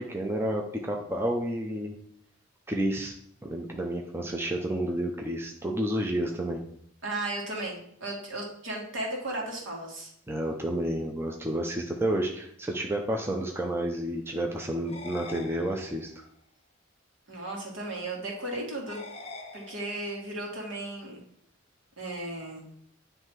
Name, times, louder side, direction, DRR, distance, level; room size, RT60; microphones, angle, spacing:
voice 1, 0.0-2.0 2.7-3.2 3.4-6.6 10.3-16.2, right 1 dB, 10° right, 0 dB, 0.6 m, -30 dB
voice 2, 7.0-10.1 17.3-19.0 19.5-21.2 22.0-22.6, right 2 dB, 65° right, -1 dB, 2.1 m, -35 dB
sound 1, 14.9-16.3 18.9-20.3, left 3 dB, 30° left, 0.7 m, -44 dB
9.5 x 3.3 x 4.6 m, 0.68 s
head